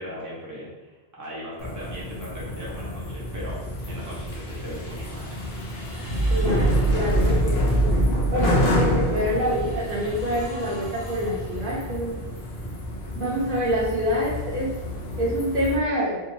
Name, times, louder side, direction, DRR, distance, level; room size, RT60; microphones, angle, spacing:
voice 1, 0.0-5.4 7.6-7.7, equal, 20° right, -7 dB, 0.9 m, -39 dB
sound 1, 1.6-15.8, equal, 75° left, 0.9 m, -26 dB
sound 2, 4.3-7.5 8.9-12.3, left 1 dB, 55° left, 1.5 m, -45 dB
voice 2, 6.3-7.8 8.3-12.1 13.2-14.7 15.1-16.2, equal, 60° right, -5 dB, 0.8 m, -26 dB
3.5 x 2.7 x 2.6 m, 1.1 s
omnidirectional pair, 1.0 m